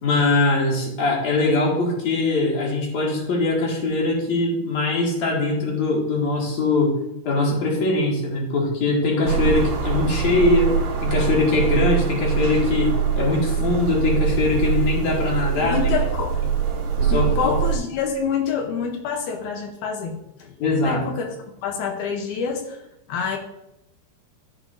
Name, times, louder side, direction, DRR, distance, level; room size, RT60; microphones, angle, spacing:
voice 1, 0.0-7.0 7.2-10.7 11.0-15.8 17.0-17.6 20.6-21.1, left 3 dB, 50° left, -2 dB, 2.8 m, -21 dB
sound 1, 9.2-17.8, right 7 dB, 65° right, 3.4 m, -23 dB
voice 2, 15.6-16.4 17.1-20.6 20.8-21.3 21.6-22.8 23.1-23.4, left 6 dB, 80° left, 2 dB, 1.8 m, -27 dB
14.0 x 6.0 x 2.6 m, 0.84 s
omnidirectional pair, 4.7 m